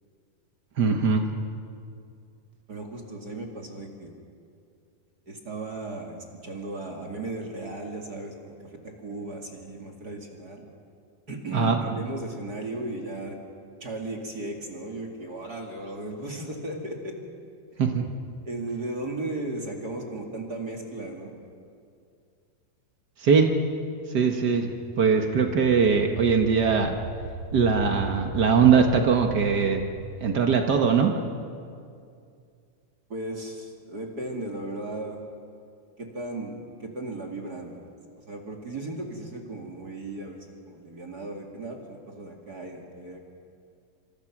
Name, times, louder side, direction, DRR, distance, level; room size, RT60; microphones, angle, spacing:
voice 1, 0.8-1.3 11.5-11.8 17.8-18.1 23.2-23.5 24.1-24.7 25.0-27.0 27.5-29.8 30.2-31.1, right 6 dB, 85° right, 3 dB, 0.9 m, -21 dB
voice 2, 2.7-4.2 5.3-10.7 11.3-13.4 13.8-17.1 17.7-17.8 18.5-21.4 33.1-35.2 36.0-37.9 38.3-43.3, right 2 dB, 30° right, 1 dB, 2.4 m, -36 dB
sound 1, 25.4-31.4, right 2 dB, 50° right, 2.8 m, -38 dB
27.5 x 26.0 x 6.1 m, 2.3 s
omnidirectional pair, 4.0 m